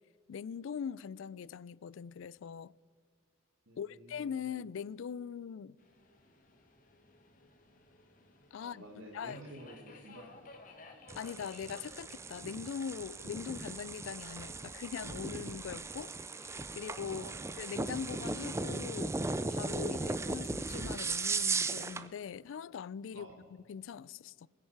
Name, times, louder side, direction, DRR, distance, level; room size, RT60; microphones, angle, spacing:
voice 1, 0.3-2.7 3.8-5.8 8.5-8.8 9.1-9.4 11.1-17.3 17.6-19.2 19.5-24.5, left 7 dB, 75° left, 0.3 m, -42 dB
voice 2, 3.7-4.2 8.6-10.4 17.1-17.4 23.1-23.4, right 1 dB, 85° right, 1.6 m, -50 dB
Subway metro underground, 5.8-17.3, left 2 dB, 40° left, 1.7 m, -59 dB
sound 1, 11.1-22.1, right 3 dB, 15° right, 0.4 m, -37 dB
21.0 x 9.8 x 4.6 m
head